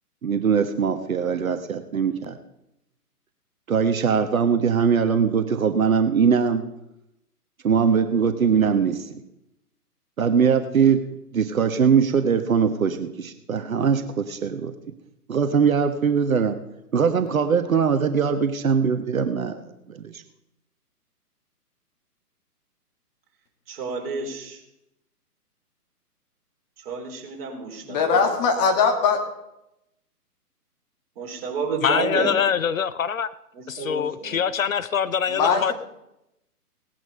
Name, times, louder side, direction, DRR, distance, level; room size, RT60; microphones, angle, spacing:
voice 1, 0.2-2.4 3.7-6.6 7.6-9.2 10.2-11.0 11.3-14.7 15.3-16.6 16.9-19.6 19.9-20.2, right 6 dB, 60° right, 8 dB, 1.4 m, -21 dB
voice 2, 23.7-24.6 26.8-28.3 31.2-32.3 33.5-34.4, right 4 dB, 40° right, 0 dB, 4.2 m, -30 dB
voice 3, 27.8-29.2 35.3-35.7, left 5 dB, 25° left, 4 dB, 1.8 m, -20 dB
voice 4, 31.8-33.3 33.7-35.7, left 7 dB, 55° left, 15 dB, 0.7 m, -24 dB
18.0 x 11.0 x 5.5 m, 0.86 s
figure-of-eight pair, 135°, 47 cm